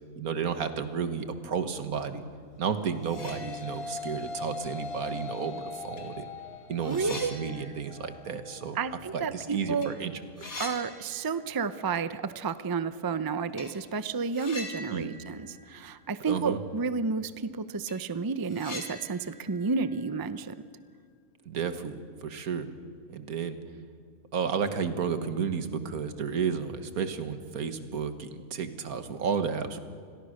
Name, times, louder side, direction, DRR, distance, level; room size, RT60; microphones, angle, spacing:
voice 1, 0.2-2.2 2.6-6.3 6.7-8.8 9.1-10.1 10.4-10.5 14.9-15.1 16.3-16.6 21.5-22.7 23.1-23.6 24.3-29.8, right 6 dB, 85° right, 10 dB, 1.8 m, -32 dB
sound 1, 2.7-11.8, left 4 dB, 30° left, 0.6 m, -42 dB
sound 2, 3.0-4.1 4.4-4.5 5.5-5.6 6.0-9.4 9.7-9.9 10.2-11.7 12.0-12.1 13.6-13.8 14.3-16.5 16.7-16.8 17.3-17.4 17.7-20.9, left 2 dB, 70° left, 3.7 m, -45 dB
voice 2, 6.8-7.3 8.8-9.9 10.6-20.6, right 5 dB, 25° right, 13 dB, 0.4 m, -31 dB
28.5 x 21.5 x 6.6 m, 2.1 s
omnidirectional pair, 1.5 m